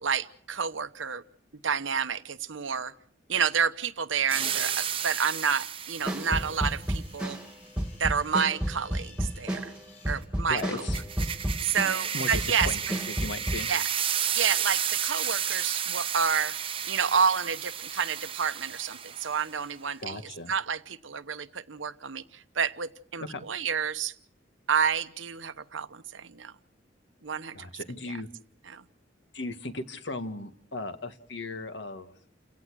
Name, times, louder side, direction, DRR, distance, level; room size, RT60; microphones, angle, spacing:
voice 1, 0.0-1.2 1.6-2.9 3.3-7.4 8.0-9.7 10.1-10.6 11.6-12.7 13.7-13.8 14.3-16.6 16.9-20.2 20.5-24.1 24.7-26.5 27.2-27.6 28.7-28.8, right 6 dB, 85° right, 1.0 m, -29 dB
sound 1, 4.3-6.6 10.6-19.5, right 9 dB, 30° right, 0.8 m, -32 dB
sound 2, 5.2-10.2, left 5 dB, 35° left, 6.4 m, -56 dB
sound 3, 6.1-12.1 12.3-13.7, right 1 dB, 5° right, 1.9 m, -31 dB
voice 2, 10.5-11.0 12.1-13.7 20.0-20.5 23.2-23.4 27.5-28.3 29.3-32.1, left 2 dB, 70° left, 1.6 m, -37 dB
29.5 x 17.0 x 6.3 m
head